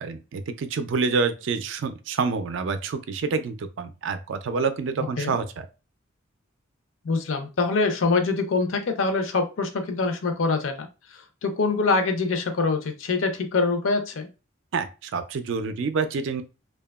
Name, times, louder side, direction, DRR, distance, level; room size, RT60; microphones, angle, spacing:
voice 1, 0.0-5.7 14.7-16.4, right 4 dB, 60° right, 10 dB, 0.3 m, -27 dB
voice 2, 7.0-10.9 11.4-14.3, left 3 dB, 70° left, 7 dB, 0.5 m, -24 dB
2.8 x 2.2 x 2.2 m, 0.30 s
head